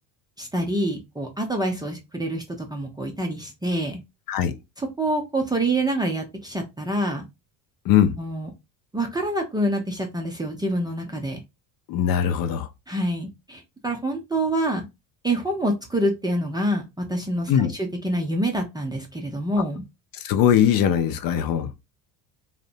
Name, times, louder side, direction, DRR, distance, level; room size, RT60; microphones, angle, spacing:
voice 1, 0.4-4.0 4.8-7.2 8.2-8.5 8.9-11.4 12.9-14.8 15.2-19.8, right 1 dB, 10° right, 0.4 m, -26 dB
voice 2, 11.9-12.7 17.5-17.7 20.2-21.7, left 9 dB, 50° left, 0.5 m, -20 dB
2.6 x 2.1 x 2.5 m
supercardioid pair, 85°, 44 cm